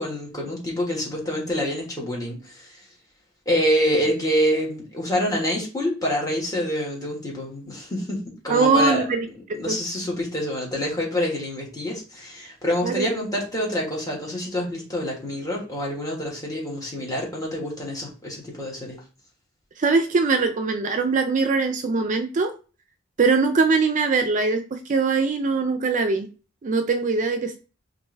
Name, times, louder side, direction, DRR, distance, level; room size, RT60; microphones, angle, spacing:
voice 1, 0.0-2.8 3.4-9.1 9.5-19.0, equal, 20° left, -2 dB, 1.5 m, -26 dB
voice 2, 8.5-9.3 9.7-9.8 12.8-13.1 19.8-22.5 23.2-26.3 26.6-27.6, right 4 dB, 40° right, 7 dB, 0.4 m, -21 dB
4.4 x 2.6 x 3.2 m, 0.34 s
head